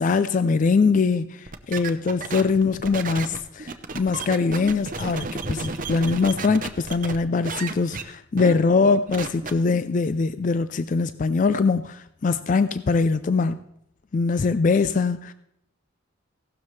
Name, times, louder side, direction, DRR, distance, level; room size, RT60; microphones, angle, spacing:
voice 1, 0.0-13.6 14.1-15.3, left 4 dB, 40° left, 12 dB, 0.3 m, -22 dB
sound 1, 1.5-7.2 7.4-8.0 8.4-8.5 8.8-9.5, right 4 dB, 40° right, 0.7 m, -32 dB
16.5 x 12.5 x 3.2 m, 0.78 s
head